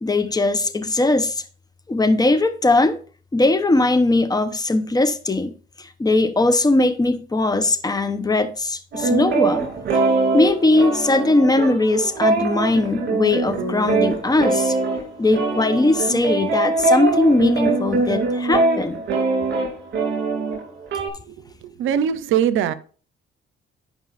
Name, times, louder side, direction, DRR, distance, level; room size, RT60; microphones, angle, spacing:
voice 1, 0.0-1.4 1.9-3.0 3.3-9.7 10.3-14.8 15.2-19.0, left 2 dB, 20° left, 0.8 m, -19 dB
sound 1, 8.9-21.1, right 3 dB, 60° right, 2.5 m, -22 dB
voice 2, 21.3-22.7, right 9 dB, 85° right, 0.6 m, -22 dB
12.5 x 5.3 x 2.5 m
cardioid pair, 90°, 20 cm